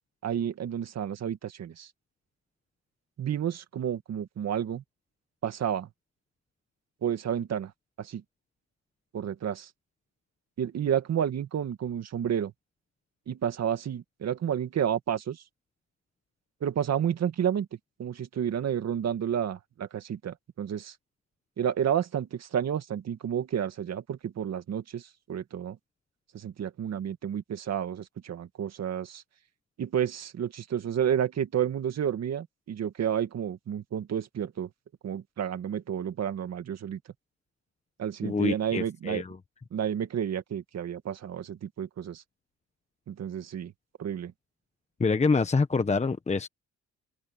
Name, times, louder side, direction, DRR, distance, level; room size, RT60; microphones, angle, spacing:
voice 1, 0.2-1.9 3.2-4.8 5.4-5.9 7.0-7.7 8.0-8.2 9.1-9.7 10.6-12.5 13.3-15.4 16.6-17.7 18.0-21.0 21.6-25.8 26.3-29.2 29.8-34.7 35.0-37.0 38.0-39.2 39.7-42.2 43.1-43.7 44.0-44.3, right 9 dB, 60° right, 2.2 m, -30 dB
voice 2, 38.2-39.4 45.0-46.5, left 4 dB, 20° left, 1.1 m, -26 dB
cardioid pair, 90°, 30 cm